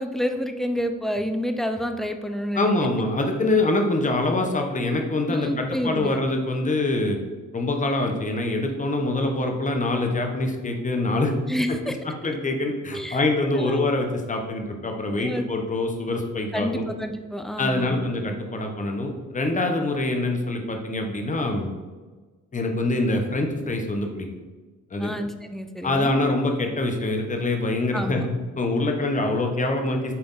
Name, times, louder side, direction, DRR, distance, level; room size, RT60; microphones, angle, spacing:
voice 1, 0.0-2.7 5.3-6.2 11.5-12.0 12.9-13.2 13.5-13.8 15.2-15.5 16.5-18.1 25.0-26.1 27.9-28.3, equal, ahead, 7 dB, 0.5 m, -29 dB
voice 2, 2.5-7.2 7.5-11.3 11.9-12.0 12.2-16.8 17.6-21.7 22.5-24.3 24.9-25.1 25.8-28.3 28.6-30.1, left 2 dB, 25° left, 3 dB, 1.1 m, -25 dB
8.5 x 3.5 x 4.0 m, 1.3 s
cardioid pair, 90°, 30 cm